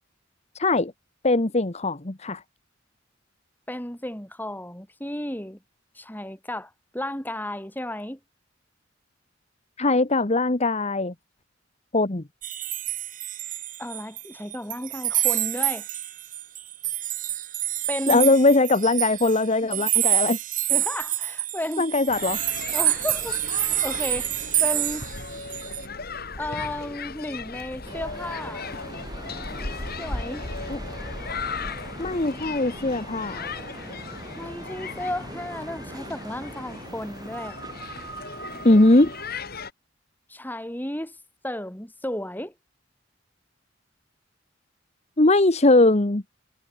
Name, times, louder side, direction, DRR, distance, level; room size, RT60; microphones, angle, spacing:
voice 1, 0.5-0.9 1.2-2.4 9.8-11.1 11.9-12.2 18.1-20.4 21.8-22.4 30.7-30.8 32.0-33.5 38.6-39.1 45.2-46.2, left 2 dB, 35° left, 1.2 m, -20 dB
voice 2, 3.7-5.6 5.9-8.2 13.8-15.9 17.9-18.4 19.6-19.8 20.7-21.8 22.7-25.1 26.4-28.7 30.0-30.4 34.4-37.6 40.3-41.2 41.4-42.5, left 1 dB, 10° left, 6.6 m, -33 dB
sound 1, 12.4-14.3 14.5-25.9, right 14 dB, 45° right, 1.5 m, -27 dB
sound 2, 22.1-39.7, left 4 dB, 50° left, 3.9 m, -37 dB
sound 3, 27.8-39.3, right 2 dB, 20° right, 5.0 m, -41 dB
head